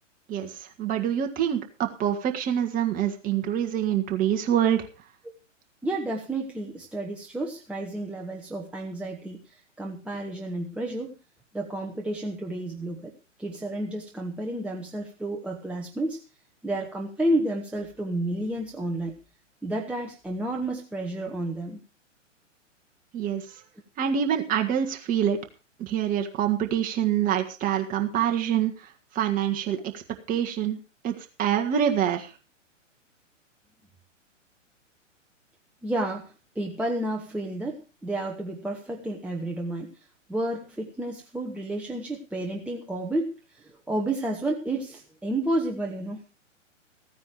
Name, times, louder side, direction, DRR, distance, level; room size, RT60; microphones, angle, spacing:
voice 1, 0.3-4.8 23.1-23.4 24.0-25.4 25.8-28.7 29.1-30.0 30.3-30.8 31.0-31.1 31.4-32.3, right 9 dB, 20° right, 4 dB, 1.7 m, -25 dB
voice 2, 5.8-11.1 11.5-13.1 13.4-16.2 16.6-19.1 19.6-21.8 35.8-39.9 40.3-46.2, right 1 dB, 5° right, 0 dB, 1.1 m, -31 dB
15.0 x 9.5 x 5.0 m, 0.34 s
figure-of-eight pair, 125°, 38 cm